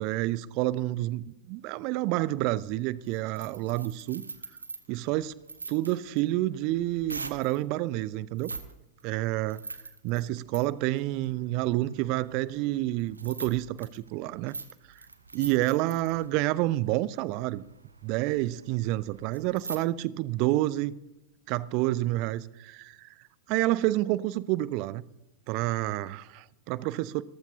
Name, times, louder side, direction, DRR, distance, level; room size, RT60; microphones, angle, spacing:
voice 1, 0.0-4.2 4.9-5.3 5.7-8.5 9.0-9.6 10.0-14.6 14.9-15.0 15.3-17.6 18.0-20.9 21.5-23.1 23.5-25.0 25.5-27.2, right 16 dB, 45° right, 0.6 m, -29 dB
sound 1, 2.6-7.6 8.3-8.7 9.0-19.8, right 4 dB, 80° right, 1.0 m, -44 dB
28.5 x 14.0 x 2.8 m
figure-of-eight pair, 90°, 0 cm